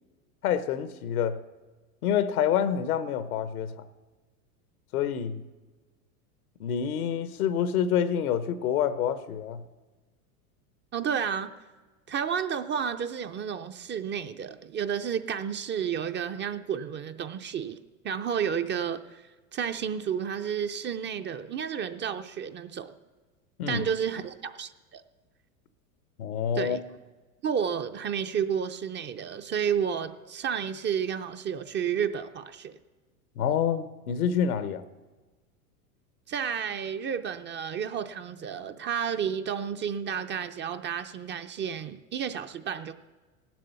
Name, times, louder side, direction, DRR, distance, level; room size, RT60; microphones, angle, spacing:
voice 1, 0.4-1.4 2.0-3.7 4.9-5.4 6.6-9.6 23.6-23.8 26.2-26.8 33.4-34.8, left 8 dB, 80° left, 1.1 m, -27 dB
voice 2, 10.9-11.5 12.1-17.8 18.0-19.2 19.5-22.9 23.7-25.0 26.5-26.8 27.4-32.8 36.3-42.9, right 8 dB, 25° right, 0.5 m, -31 dB
17.5 x 7.7 x 6.9 m
hypercardioid pair, 100°, 44 cm